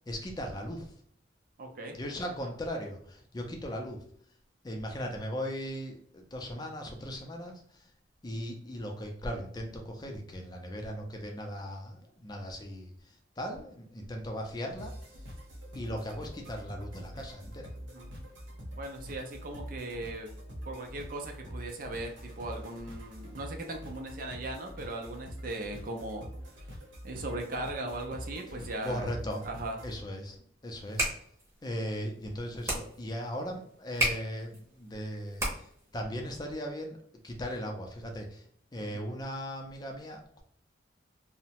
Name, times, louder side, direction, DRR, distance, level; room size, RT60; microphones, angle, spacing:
voice 1, 0.1-0.9 1.9-4.0 4.6-7.9 8.2-14.9 15.7-17.7 28.8-29.4 29.8-30.4 30.6-31.1 31.6-37.0 37.2-38.4 38.7-40.4, equal, 20° left, 2 dB, 0.4 m, -38 dB
voice 2, 1.6-2.0 17.8-18.1 18.8-20.3 20.7-26.3 26.6-26.7 27.0-29.1 29.4-29.8 38.8-39.0, right 2 dB, 50° right, 3 dB, 0.5 m, -38 dB
sound 1, 14.8-30.0, equal, 85° right, 0.8 m, -45 dB
sound 2, 30.7-35.9, right 1 dB, 15° right, 0.8 m, -35 dB
2.8 x 2.1 x 2.8 m, 0.63 s
head